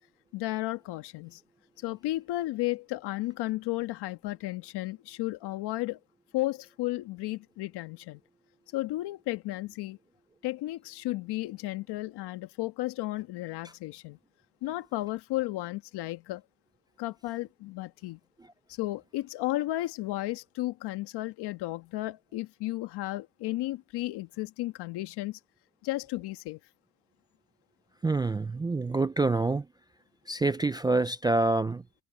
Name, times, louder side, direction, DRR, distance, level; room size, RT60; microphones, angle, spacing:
voice 1, 0.3-1.4 1.8-6.0 6.3-8.2 8.7-10.0 10.4-14.2 14.6-16.4 17.0-18.2 18.7-25.4 25.8-26.6, left 17 dB, 75° left, 1.5 m, -33 dB
voice 2, 28.0-29.7 30.3-31.8, right 3 dB, 10° right, 0.3 m, -26 dB
cardioid pair, 130°, 40 cm